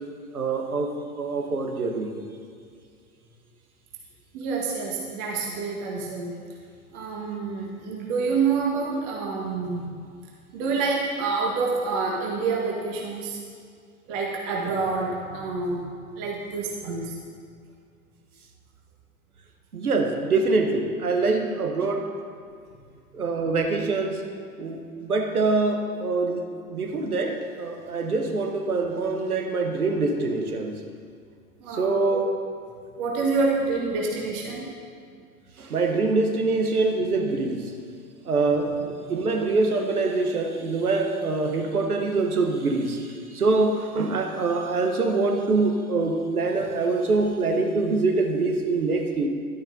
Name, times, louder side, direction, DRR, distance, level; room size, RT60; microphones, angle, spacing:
voice 1, 0.3-0.9 1.2-2.1 19.7-22.1 23.1-24.3 24.6-26.4 26.7-30.8 31.7-32.3 35.6-37.7 38.3-49.3, right 3 dB, 80° right, 4 dB, 1.1 m, -24 dB
voice 2, 4.3-6.3 6.9-9.9 10.5-13.4 14.1-17.2 31.6-32.2 33.0-34.7 38.4-38.5, right 4 dB, 40° right, -2 dB, 1.5 m, -27 dB
12.0 x 10.0 x 2.7 m, 2.2 s
figure-of-eight pair, 85°, 44 cm